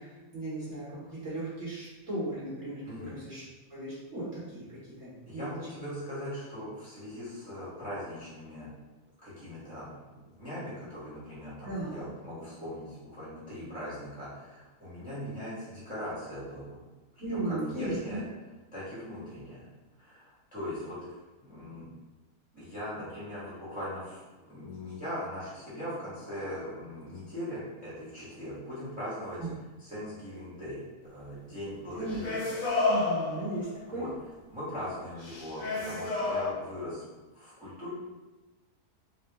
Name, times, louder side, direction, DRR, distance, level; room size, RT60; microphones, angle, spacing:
voice 1, 0.0-3.4 3.7-4.7 5.0-5.5 11.6-12.0 17.2-18.2 29.4-29.5 31.9-32.2 32.8-34.0, right 2 dB, 55° right, -10 dB, 1.4 m, -36 dB
voice 2, 5.2-8.7 9.2-16.8 17.4-18.2 18.7-19.6 20.0-21.0 21.5-21.9 22.5-29.4 29.8-32.4 33.9-34.1 34.5-37.0 37.3-37.9, equal, 5° right, -11 dB, 1.3 m, -40 dB
sound 1, 32.0-33.8 35.2-36.5, left 3 dB, 65° left, 1.0 m, -30 dB
3.7 x 2.4 x 3.5 m, 1.2 s
omnidirectional pair, 1.7 m